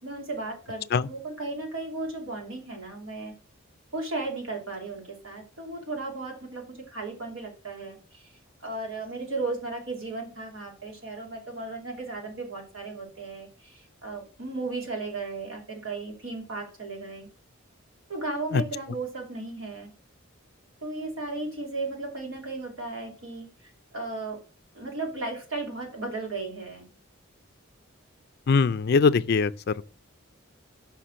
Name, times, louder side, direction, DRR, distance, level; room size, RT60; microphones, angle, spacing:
voice 1, 0.0-3.3 3.9-8.3 8.6-17.3 18.1-19.9 20.8-24.4 24.7-26.9, right 3 dB, 80° right, 3.0 m, -35 dB
voice 2, 28.5-29.5, left 5 dB, 50° left, 0.4 m, -21 dB
5.9 x 5.8 x 6.2 m
head